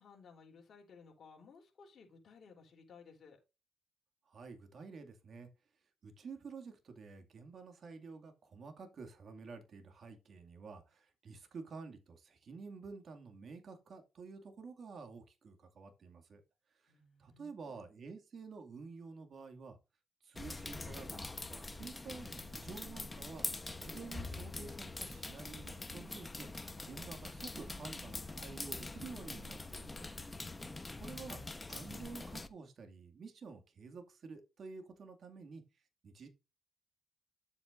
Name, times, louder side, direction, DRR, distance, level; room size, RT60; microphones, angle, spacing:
voice 1, 0.0-3.4 16.9-17.9, left 5 dB, 50° left, 3.4 m, -58 dB
voice 2, 4.3-5.5 6.0-16.4 16.7-16.9 17.2-19.8 20.2-23.4 23.8-30.1 30.5-30.7 31.0-35.6 36.0-36.3, right 4 dB, 50° right, 2.2 m, -50 dB
sound 1, 20.4-32.5, left 2 dB, 20° left, 1.0 m, -44 dB
10.0 x 8.0 x 2.6 m
cardioid pair, 90°, 0 cm